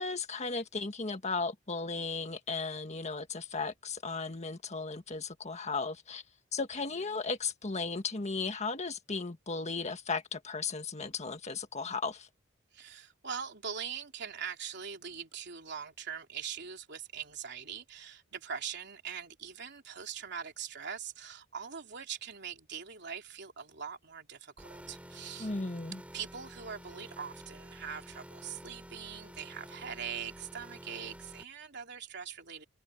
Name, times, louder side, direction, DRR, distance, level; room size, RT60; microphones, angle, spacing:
voice 1, 0.0-6.2 6.5-12.3 25.4-26.0, left 4 dB, 35° left, 1.6 m, -35 dB
voice 2, 6.8-7.2 12.7-25.5 26.1-32.6, right 7 dB, 60° right, 3.4 m, -42 dB
sound 1, 24.6-31.4, equal, 5° right, 5.2 m, -50 dB
head